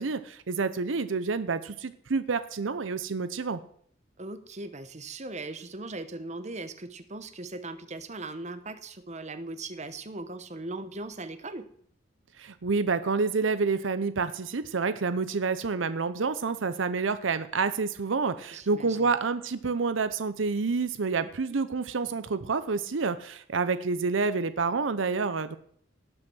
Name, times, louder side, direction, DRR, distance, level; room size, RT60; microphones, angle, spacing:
voice 1, 0.0-3.6 12.4-25.6, right 4 dB, 75° right, 12 dB, 0.7 m, -28 dB
voice 2, 4.2-11.7 18.5-19.1, right 2 dB, 35° right, 10 dB, 1.0 m, -39 dB
18.0 x 6.2 x 6.2 m, 0.63 s
head